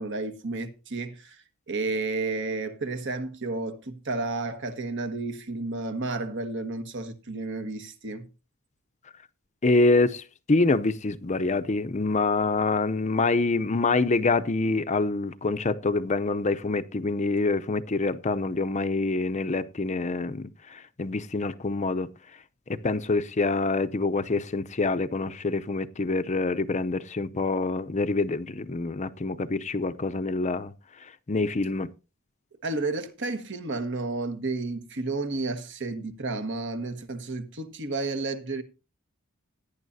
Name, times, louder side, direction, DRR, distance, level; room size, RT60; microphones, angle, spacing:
voice 1, 0.0-8.3 32.6-38.6, right 3 dB, 60° right, 1.5 m, -32 dB
voice 2, 9.6-22.1 22.7-30.7 31.3-31.9, left 3 dB, 35° left, 0.6 m, -26 dB
17.0 x 9.9 x 2.7 m
head